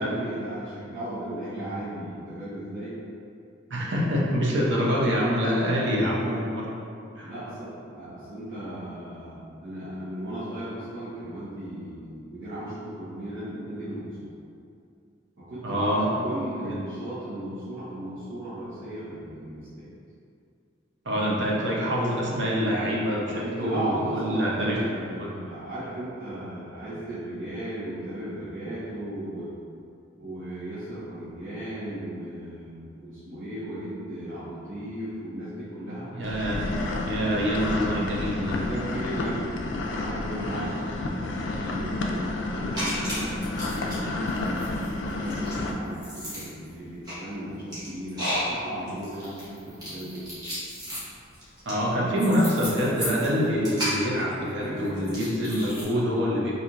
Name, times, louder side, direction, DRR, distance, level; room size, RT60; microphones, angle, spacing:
voice 1, 0.0-3.0 7.2-14.3 15.5-19.9 23.3-29.5 30.2-36.1 38.5-44.2 44.9-50.2 54.6-55.0, right 1 dB, 80° right, -15 dB, 1.2 m, -36 dB
voice 2, 3.7-6.7 7.1-7.3 15.6-16.1 16.6-16.8 21.0-24.8 25.2-25.4 36.1-36.7 37.0-38.6 51.7-56.5, equal, 65° right, -4 dB, 0.7 m, -26 dB
sound 1, 36.2-45.7, left 2 dB, 65° left, 0.4 m, -30 dB
sound 2, 42.7-44.0 44.3-55.8, equal, 20° right, 1.1 m, -34 dB
4.3 x 2.7 x 2.5 m, 2.5 s
head